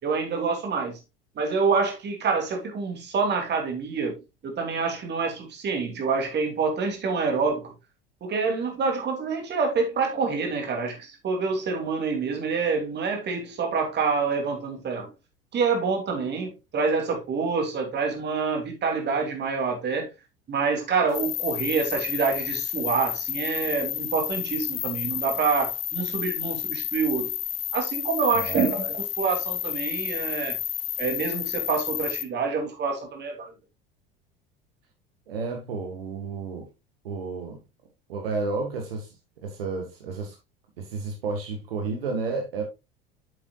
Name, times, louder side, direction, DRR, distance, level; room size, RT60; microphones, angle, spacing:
voice 1, 0.0-1.0 1.3-7.7 8.2-15.1 15.5-20.1 20.5-27.3 27.7-30.6 31.0-33.5, right 5 dB, 35° right, 2.9 m, -27 dB
sound 1, 21.1-32.2, left 11 dB, 75° left, 0.8 m, -31 dB
voice 2, 28.3-28.6 35.3-36.7 37.0-37.6 38.1-39.1 39.4-40.4 40.8-42.6, right 4 dB, 75° right, 1.8 m, -31 dB
8.9 x 7.5 x 2.4 m
figure-of-eight pair, 70°, 29 cm